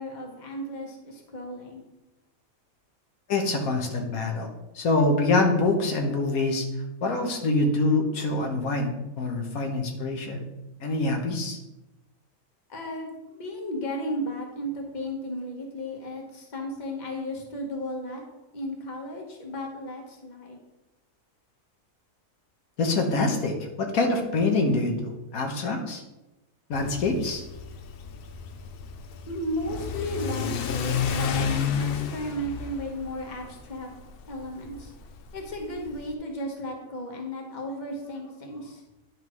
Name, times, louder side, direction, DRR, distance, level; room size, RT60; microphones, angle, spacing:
voice 1, 0.0-1.8 12.7-18.2 18.5-20.6 29.3-33.9 34.3-34.9 35.3-38.8, equal, 35° left, 1 dB, 1.3 m, -34 dB
voice 2, 3.3-4.5 4.7-6.6 7.0-10.4 10.8-11.6 22.8-26.0 26.7-27.4, left 2 dB, 90° left, 3 dB, 1.5 m, -25 dB
Car / Accelerating revving vroom, 26.7-36.1, left 7 dB, 65° left, 0.6 m, -32 dB
10.5 x 5.4 x 3.1 m, 0.99 s
omnidirectional pair, 1.5 m